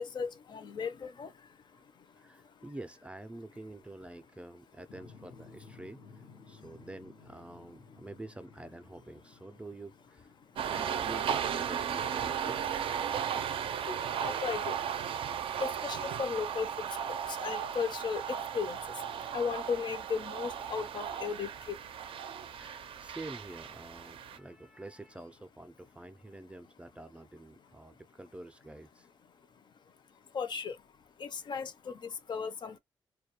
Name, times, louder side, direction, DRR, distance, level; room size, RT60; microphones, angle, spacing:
voice 1, 0.0-2.6 6.4-6.7 10.4-10.7 13.0-21.9 22.2-22.3 22.6-23.1 29.5-32.8, left 6 dB, 55° left, 0.5 m, -38 dB
voice 2, 2.2-10.3 10.7-12.8 22.5-29.1 32.7-32.8, right 2 dB, 15° right, 0.4 m, -48 dB
sound 1, 4.9-11.4, left 4 dB, 90° left, 0.8 m, -56 dB
sound 2, 10.6-24.4, right 8 dB, 80° right, 0.4 m, -35 dB
2.2 x 2.2 x 2.9 m
cardioid pair, 85°, 9 cm